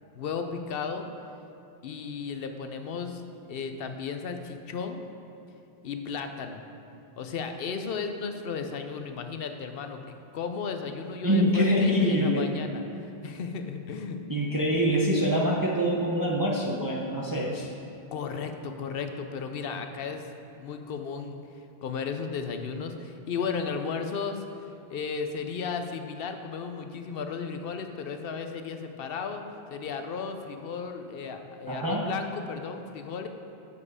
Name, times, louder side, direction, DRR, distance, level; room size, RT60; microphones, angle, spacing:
voice 1, 0.1-1.0 1.8-5.0 5.8-6.6 7.2-14.2 18.1-20.3 20.6-24.4 24.9-29.4 29.7-33.3, left 5 dB, 65° left, 6 dB, 0.8 m, -35 dB
voice 2, 11.2-12.5 14.3-17.7 31.7-32.0, equal, 20° right, -3 dB, 0.7 m, -25 dB
7.5 x 6.7 x 4.8 m, 3.0 s
omnidirectional pair, 1.1 m